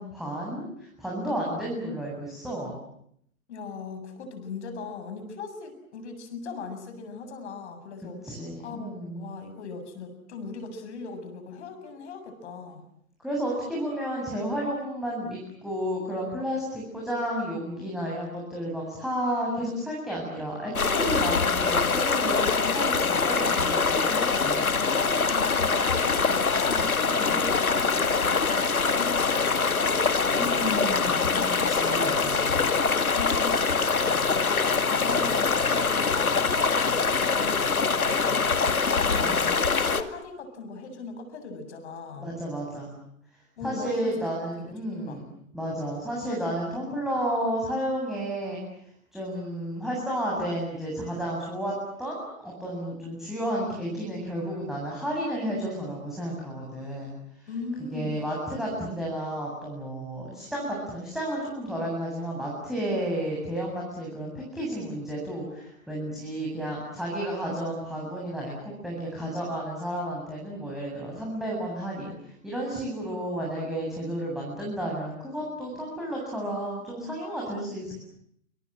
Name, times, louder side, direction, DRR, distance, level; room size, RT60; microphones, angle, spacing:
voice 1, 0.0-2.8 8.2-9.2 13.2-24.7 27.1-27.5 30.3-32.6 39.0-39.5 42.2-42.9 43.6-48.6 49.1-57.1 57.8-78.0, equal, ahead, -4 dB, 7.9 m, -32 dB
voice 2, 3.5-8.2 8.6-12.8 25.2-31.2 33.1-38.7 39.1-42.3 43.6-45.2 57.5-58.2, left 4 dB, 50° left, 8 dB, 7.4 m, -39 dB
sound 1, 20.7-40.0, left 4 dB, 75° left, 2.3 m, -24 dB
29.0 x 27.0 x 7.6 m, 0.71 s
figure-of-eight pair, 120°, 43 cm